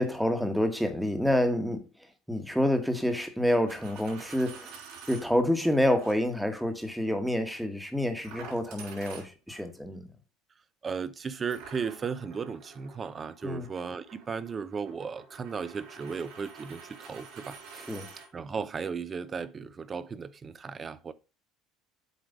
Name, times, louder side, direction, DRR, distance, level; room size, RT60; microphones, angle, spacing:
voice 1, 0.0-1.8 2.3-4.7 5.1-10.1 13.4-13.7 17.9-18.1, left 1 dB, ahead, 1.2 m, -28 dB
Coin (dropping), 3.5-5.3 6.0-6.2 8.2-9.7 11.5-18.3, right 5 dB, 65° right, 4.2 m, -48 dB
voice 2, 10.8-17.6 18.3-21.1, right 6 dB, 30° right, 0.6 m, -35 dB
8.0 x 3.2 x 5.2 m
supercardioid pair, 110°, 0 cm